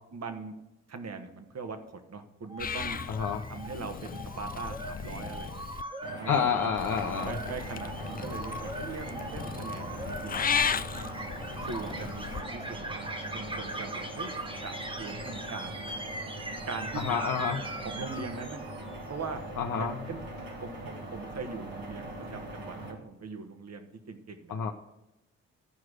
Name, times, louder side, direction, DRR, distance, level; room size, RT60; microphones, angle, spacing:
voice 1, 0.1-0.5 0.9-1.8 2.1-3.0 3.5-5.7 6.2-6.4 7.2-10.4 11.6-13.0 13.3-14.4 14.6-14.7 15.0-15.8 16.6-17.0 17.8-18.6 19.1-19.4 19.7-20.2 20.6-20.7 21.1-24.7, right 4 dB, 50° right, 7 dB, 1.4 m, -41 dB
sound 1, 2.5-19.0, right 1 dB, 15° right, 1.1 m, -41 dB
Purr / Meow, 2.6-5.8 6.8-12.4, left 7 dB, 25° left, 0.4 m, -36 dB
voice 2, 3.1-3.4 6.3-7.4 10.3-10.4 16.9-17.7 19.6-20.0 24.5-24.7, left 7 dB, 60° left, 2 dB, 0.8 m, -29 dB
sound 2, 6.0-22.9, right 1 dB, 80° right, 2.1 m, -41 dB
13.0 x 4.7 x 6.3 m, 0.95 s
hypercardioid pair, 40°, 34 cm